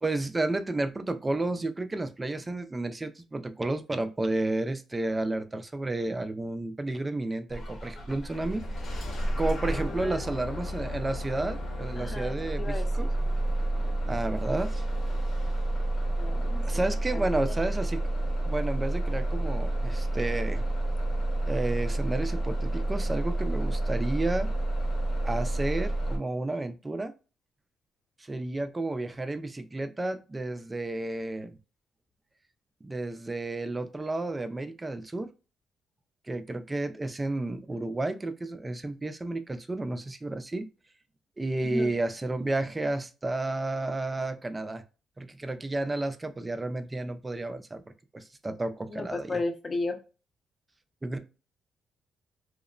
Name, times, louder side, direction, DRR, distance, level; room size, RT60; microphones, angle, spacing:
voice 1, 0.0-8.6 9.4-13.1 14.1-14.9 16.6-18.0 18.4-20.6 21.5-24.5 25.2-27.1 28.2-31.6 32.8-35.3 36.3-40.7 41.4-44.8 45.2-47.8 48.1-49.4 51.0-51.2, right 2 dB, 20° right, 9 dB, 0.4 m, -31 dB
Bus / Engine starting, 7.5-26.2, right 1 dB, 60° left, 0.9 m, -30 dB
voice 2, 9.7-10.3 11.9-13.1 16.2-17.6 41.6-41.9 48.9-50.0, left 2 dB, 30° left, 6 dB, 0.6 m, -35 dB
2.9 x 2.0 x 2.3 m, 0.32 s
cardioid pair, 90°, 0 cm